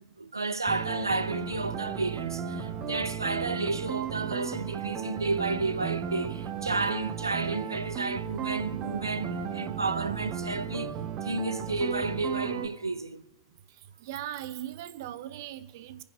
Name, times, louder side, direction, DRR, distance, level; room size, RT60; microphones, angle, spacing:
voice 1, 0.0-11.0 11.2-13.2, right 3 dB, 85° right, 0.5 m, -31 dB
sound 1, 0.7-12.7, right 8 dB, 40° right, 1.6 m, -35 dB
voice 2, 14.0-16.0, right 12 dB, 60° right, 0.9 m, -39 dB
29.0 x 10.0 x 2.7 m
figure-of-eight pair, 85°, 2 cm